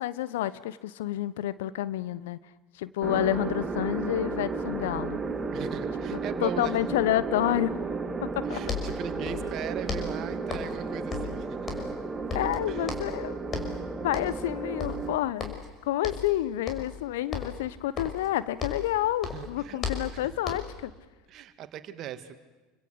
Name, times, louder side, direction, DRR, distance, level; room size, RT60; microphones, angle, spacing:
voice 1, 0.0-2.4 2.8-5.2 6.1-7.8 8.4-8.6 12.3-13.4 14.0-15.5 15.8-20.9, left 13 dB, 70° left, 16 dB, 1.1 m, -29 dB
sound 1, 3.0-15.1, right 4 dB, 20° right, 2.7 m, -33 dB
voice 2, 5.5-6.8 8.4-11.7 12.7-12.9 19.2-19.8 20.1-20.3 21.3-22.4, right 11 dB, 45° right, 10 dB, 2.3 m, -40 dB
sound 2, 8.3-8.4 8.6-9.6 9.9-10.8 11.1-12.0 12.3-13.2 13.5-13.8 14.1-14.5 14.8-15.7 16.0-16.3 16.7-17.0 17.3-18.9 19.2-20.8, left 5 dB, 30° left, 5.9 m, -36 dB
28.5 x 25.0 x 8.1 m, 1.2 s
figure-of-eight pair, 75°, 0 cm